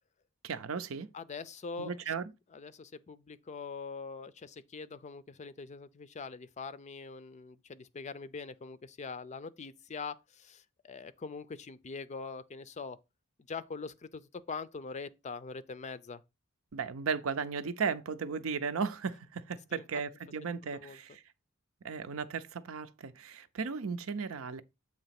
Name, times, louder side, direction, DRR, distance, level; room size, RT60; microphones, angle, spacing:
voice 1, 0.4-1.1 1.8-2.3 16.7-21.2 21.8-24.6, right 5 dB, 75° right, 0.6 m, -35 dB
voice 2, 1.1-1.9 2.5-13.0 13.5-16.2 19.7-19.8 20.7-21.0, left 4 dB, 35° left, 0.4 m, -43 dB
7.8 x 3.0 x 5.8 m
head